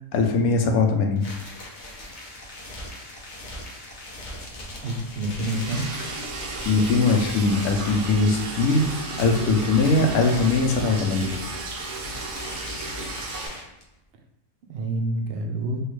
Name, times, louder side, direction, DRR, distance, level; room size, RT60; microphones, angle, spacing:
voice 1, 0.1-1.3 6.7-11.3, left 3 dB, 70° left, 3 dB, 1.0 m, -21 dB
sound 1, 1.2-13.8, left 1 dB, 55° left, 0.5 m, -40 dB
voice 2, 4.8-5.9 14.7-15.8, right 1 dB, 90° right, 2 dB, 0.5 m, -28 dB
Liquid, 5.3-13.5, right 2 dB, 75° right, 1.1 m, -34 dB
3.4 x 2.3 x 3.1 m, 0.83 s
omnidirectional pair, 1.7 m